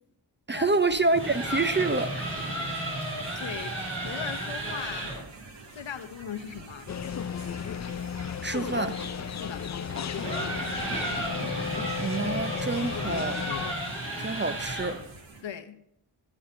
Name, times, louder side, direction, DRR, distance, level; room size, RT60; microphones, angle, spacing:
voice 1, 0.5-2.3 8.4-9.0 12.0-13.4 14.2-15.0, right 3 dB, 25° right, 0.5 m, -27 dB
sound 1, 0.5-15.4, right 3 dB, 60° right, 1.8 m, -48 dB
sound 2, 1.1-5.3 7.9-15.1, right 1 dB, 80° right, 4.4 m, -34 dB
voice 2, 3.3-5.1 5.7-6.9 9.3-9.6 15.4-15.8, left 8 dB, 65° left, 0.9 m, -38 dB
sound 3, 6.9-13.7, left 8 dB, 40° left, 0.4 m, -34 dB
9.1 x 8.6 x 4.3 m
cardioid pair, 40°, 48 cm